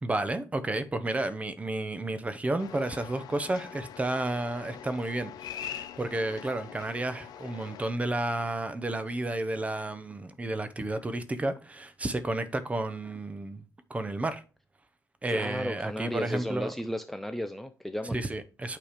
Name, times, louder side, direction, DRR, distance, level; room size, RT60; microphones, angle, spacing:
voice 1, 0.0-13.6 13.9-14.4 15.2-16.7 18.1-18.8, right 2 dB, 20° right, 0.8 m, -32 dB
sound 1, 2.6-7.9, left 10 dB, 75° left, 0.7 m, -43 dB
voice 2, 15.3-18.2, left 1 dB, 5° left, 0.5 m, -34 dB
8.8 x 3.2 x 5.1 m
cardioid pair, 105°, 7 cm